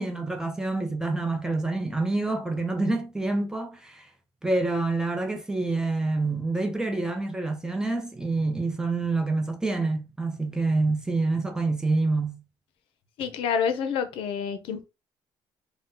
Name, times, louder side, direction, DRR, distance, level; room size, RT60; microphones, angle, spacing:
voice 1, 0.0-4.1 4.4-12.4, right 3 dB, 5° right, 0.5 m, -27 dB
voice 2, 13.2-14.8, left 7 dB, 80° left, 0.5 m, -28 dB
2.7 x 2.1 x 3.6 m
cardioid pair, 135°, 9 cm